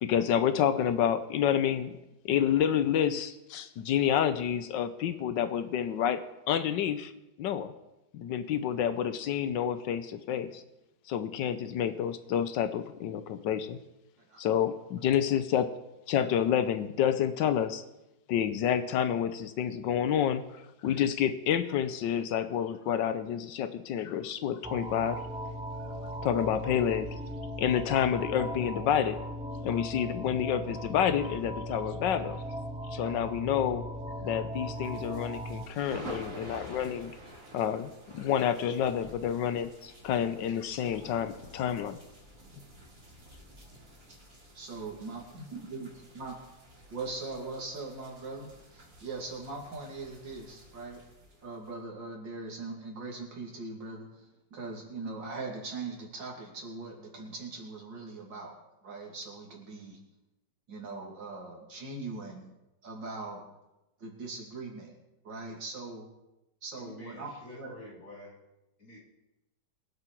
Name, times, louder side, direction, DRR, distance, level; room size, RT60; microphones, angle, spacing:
voice 1, 0.0-1.9 2.2-7.1 7.4-7.7 8.1-10.6 11.1-13.8 14.4-15.7 16.1-17.8 18.3-20.4 20.8-25.2 26.2-27.1 27.6-29.2 29.6-32.4 32.9-33.8 34.2-37.1 37.5-42.0, left 9 dB, 80° left, 11 dB, 1.4 m, -29 dB
sound 1, 24.6-35.7, equal, 5° right, 0.4 m, -38 dB
sound 2, 34.7-51.7, right 1 dB, 50° right, 3.6 m, -50 dB
voice 2, 44.6-45.9 46.2-46.3 46.9-51.0 51.4-54.1 54.5-58.5 58.8-60.0 60.7-62.5 62.8-63.4 64.0-64.9 65.3-66.1 66.6-67.3 67.6-67.7, right 3 dB, 85° right, 0 dB, 3.3 m, -40 dB
voice 3, 66.7-68.4 68.8-69.0, left 1 dB, 45° left, -3 dB, 3.7 m, -48 dB
23.0 x 7.8 x 4.6 m, 0.95 s
omnidirectional pair, 1.9 m